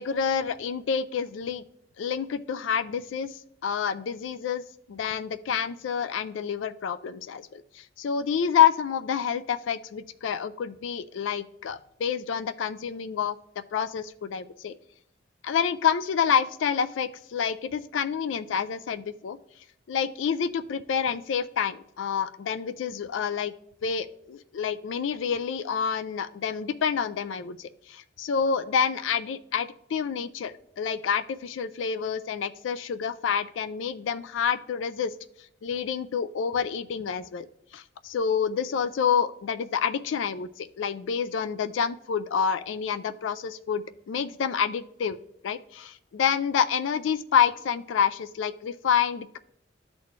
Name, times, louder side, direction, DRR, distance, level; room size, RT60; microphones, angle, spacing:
voice 1, 0.0-1.6 2.0-3.3 3.6-4.6 4.9-13.4 13.7-14.7 15.4-19.4 19.9-23.5 23.8-35.1 35.6-37.5 37.7-45.2 45.4-49.4, left 7 dB, 85° left, 13 dB, 0.4 m, -28 dB
12.5 x 4.2 x 3.1 m, 0.73 s
head